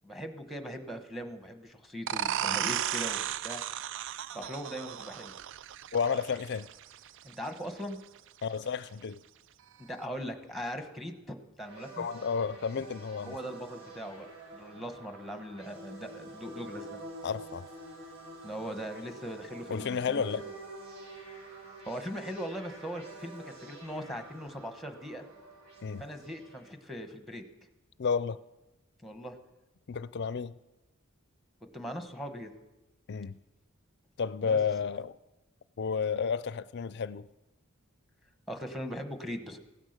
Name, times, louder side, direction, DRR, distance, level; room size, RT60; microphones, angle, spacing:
voice 1, 0.0-3.6 4.3-5.3 7.2-8.0 9.8-12.1 13.2-17.0 18.4-20.3 21.9-25.2 26.0-27.4 29.0-29.4 31.7-32.5 34.4-34.6 38.5-39.6, equal, ahead, 1.1 m, -40 dB
sound 1, 2.1-7.5, right 10 dB, 60° right, 0.4 m, -35 dB
voice 2, 5.9-6.7 8.4-9.2 12.0-13.4 17.2-17.7 19.7-20.4 25.8-26.0 28.0-28.4 29.9-30.5 33.1-33.4 34.2-35.2 35.8-37.3, left 6 dB, 50° left, 0.5 m, -31 dB
sound 2, 11.6-26.7, right 2 dB, 85° right, 6.2 m, -48 dB
16.0 x 10.0 x 6.6 m
head